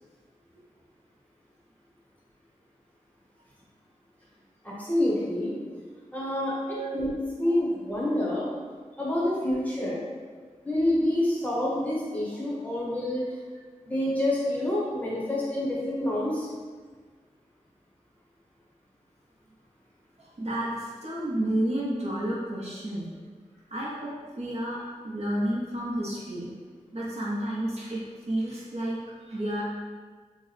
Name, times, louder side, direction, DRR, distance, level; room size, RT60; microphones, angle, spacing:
voice 1, 4.6-5.6 6.1-8.5 9.0-10.0 10.6-13.2 13.8-16.5, left 1 dB, 10° left, -7 dB, 0.9 m, -27 dB
voice 2, 20.2-23.1 23.7-24.8 25.0-26.5 26.9-29.0 29.3-29.6, right 1 dB, 50° right, -6 dB, 0.8 m, -31 dB
2.9 x 2.1 x 4.0 m, 1.5 s
wide cardioid pair, 80°, 13 cm